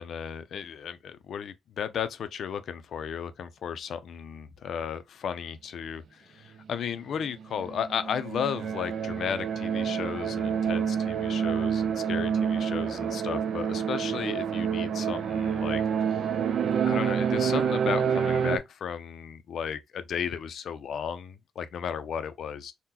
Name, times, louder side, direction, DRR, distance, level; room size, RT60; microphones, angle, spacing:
voice 1, 0.0-15.8 16.8-22.7, left 8 dB, 65° left, 0.4 m, -34 dB
sound 1, 7.4-18.6, right 7 dB, 60° right, 0.5 m, -28 dB
3.7 x 2.1 x 2.8 m
cardioid pair, 90°, 0 cm